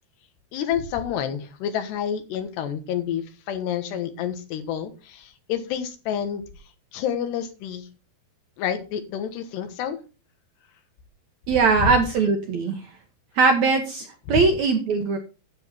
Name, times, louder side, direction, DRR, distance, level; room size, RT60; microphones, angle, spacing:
voice 1, 0.5-6.4 6.9-7.9 8.6-10.0 11.8-11.9 14.3-14.4, left 8 dB, 90° left, 8 dB, 3.5 m, -29 dB
voice 2, 11.5-12.8 13.4-15.2, right 4 dB, 65° right, 4 dB, 1.9 m, -20 dB
10.5 x 8.3 x 4.4 m, 0.32 s
omnidirectional pair, 4.7 m